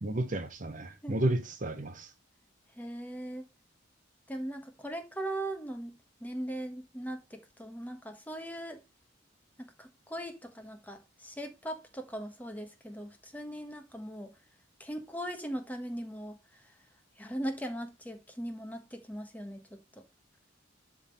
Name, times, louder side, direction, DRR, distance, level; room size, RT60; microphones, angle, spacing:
voice 1, 0.0-2.1, right 1 dB, 40° right, 0.9 m, -32 dB
voice 2, 2.7-3.4 4.3-8.8 9.6-14.3 14.8-16.6 17.2-20.0, right 1 dB, 10° left, 1.4 m, -39 dB
11.5 x 3.8 x 3.9 m
head